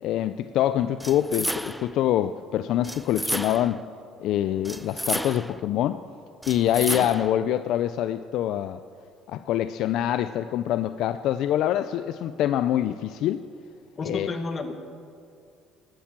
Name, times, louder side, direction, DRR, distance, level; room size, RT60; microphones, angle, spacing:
voice 1, 0.0-3.8 4.2-6.0 6.5-8.8 9.3-13.4 14.0-14.3, left 11 dB, 70° left, 12 dB, 0.4 m, -25 dB
sound 1, 1.0-2.0 2.8-3.8 4.6-5.6 6.4-7.4, equal, ahead, 0.5 m, -32 dB
voice 2, 14.0-14.7, left 3 dB, 35° left, 7 dB, 1.8 m, -31 dB
16.5 x 12.0 x 7.4 m, 2.4 s
cardioid pair, 100°, 0 cm